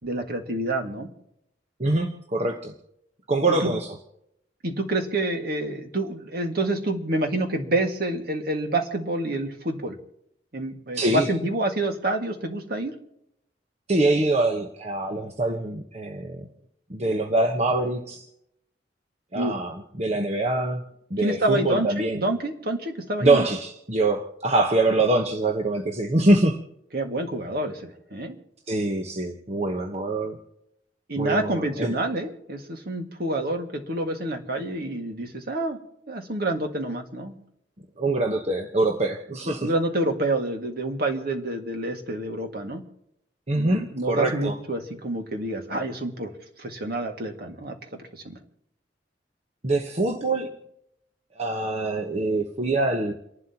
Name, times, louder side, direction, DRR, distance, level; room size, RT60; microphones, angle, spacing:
voice 1, 0.0-1.1 3.5-3.8 4.6-9.9 10.5-12.9 19.3-19.6 21.2-23.4 26.9-28.4 31.1-35.8 36.1-37.4 39.6-42.8 43.5-46.3 46.6-47.7 48.1-48.3, right 1 dB, 60° right, 4 dB, 1.9 m, -28 dB
voice 2, 1.8-2.7 3.3-4.0 10.9-11.3 13.9-16.5 16.9-18.3 19.3-20.8 21.1-22.2 23.2-26.6 28.7-30.4 31.2-31.9 38.0-39.7 43.5-44.6 49.6-50.5 51.4-53.1, right 2 dB, 40° right, 3 dB, 1.1 m, -24 dB
30.0 x 11.5 x 2.9 m, 0.79 s
head